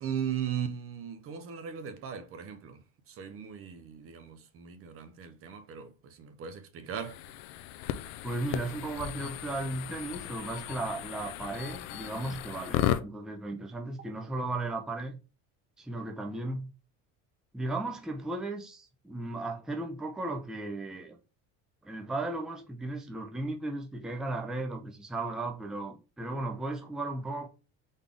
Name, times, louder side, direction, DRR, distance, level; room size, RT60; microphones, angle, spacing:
voice 1, 0.0-2.8 3.2-5.9 6.2-7.2, right 8 dB, 40° right, 0.7 m, -37 dB
sound 1, 7.0-13.0, left 12 dB, 80° left, 0.6 m, -35 dB
voice 2, 8.2-15.2 15.8-16.7 17.5-21.2 21.8-27.5, right 2 dB, ahead, 0.5 m, -35 dB
4.0 x 3.5 x 3.5 m
cardioid pair, 130°, 33 cm